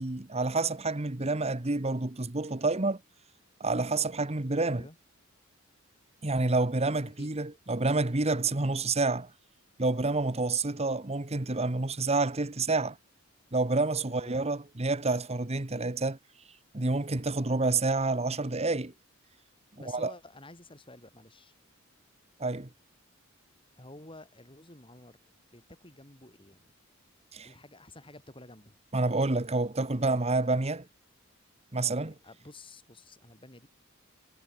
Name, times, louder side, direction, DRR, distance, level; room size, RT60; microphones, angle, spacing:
voice 1, 0.0-3.0 3.6-4.9 6.2-9.3 9.8-13.0 13.5-16.2 16.7-18.9 19.9-20.1 22.4-22.7 27.3-27.5 28.9-30.9 31.7-32.1, right 3 dB, 30° right, 1.2 m, -28 dB
voice 2, 4.7-5.0 6.3-7.3 10.7-11.0 14.0-14.5 19.7-21.5 23.8-25.2 25.5-26.7 27.4-28.8 31.9-33.7, left 2 dB, 25° left, 6.2 m, -51 dB
head